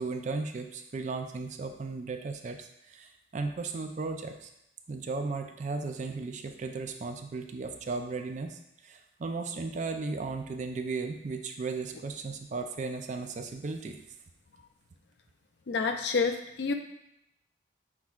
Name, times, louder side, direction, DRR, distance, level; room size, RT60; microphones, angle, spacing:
voice 1, 0.0-4.5 4.9-14.0, right 4 dB, 45° right, 6 dB, 0.4 m, -36 dB
voice 2, 15.7-16.7, left 4 dB, 70° left, 6 dB, 0.4 m, -28 dB
5.9 x 3.5 x 2.4 m, 0.81 s
head